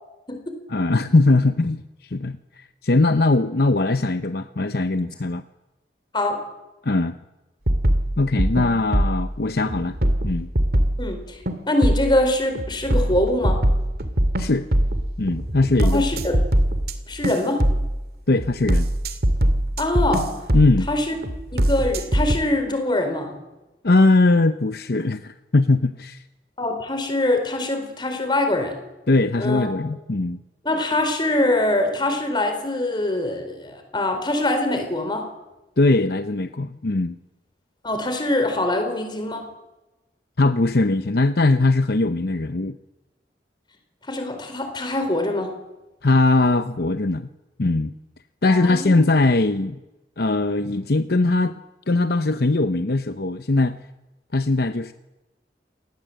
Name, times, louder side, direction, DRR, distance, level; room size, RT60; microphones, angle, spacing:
voice 1, 0.7-1.8 2.1-5.4 6.8-7.2 8.2-10.0 10.2-10.5 14.4-14.7 15.2-16.0 18.3-18.9 20.5-20.9 23.8-26.2 29.1-30.4 35.8-37.2 40.4-42.8 46.0-47.3 47.6-47.9 48.4-49.8 50.2-51.5 51.9-53.8 54.3-54.9, left 2 dB, 60° left, 10 dB, 0.8 m, -20 dB
sound 1, 7.7-9.3 9.7-11.1 11.5-12.2 12.6-16.9 17.2-17.9 18.3-20.9 21.2-22.4, right 1 dB, 60° right, 2.5 m, -21 dB
voice 2, 11.0-11.4 11.7-13.6 15.9-16.4 17.1-17.6 19.8-20.3 20.9-21.1 21.5-23.3 26.6-28.7 29.4-29.7 30.6-35.3 37.8-39.5 44.1-45.5 48.5-49.0, left 1 dB, 25° left, 6 dB, 4.2 m, -23 dB
27.0 x 19.0 x 7.9 m, 1.0 s
head